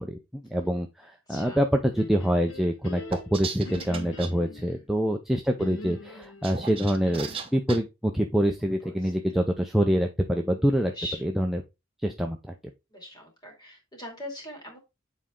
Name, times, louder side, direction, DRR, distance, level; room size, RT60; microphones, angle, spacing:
voice 1, 0.0-10.9 11.2-11.6 12.0-12.5, equal, ahead, 3 dB, 0.5 m, -26 dB
voice 2, 1.3-1.6 4.5-4.9 8.8-9.4 10.8-11.2 12.9-14.8, equal, 20° left, 1 dB, 2.7 m, -41 dB
sound 1, 1.9-4.7 5.6-7.6, left 2 dB, 90° left, 1.2 m, -43 dB
sound 2, 3.1-4.3 6.2-7.8, right 5 dB, 30° right, 1.0 m, -36 dB
7.2 x 4.3 x 3.7 m, 0.24 s
head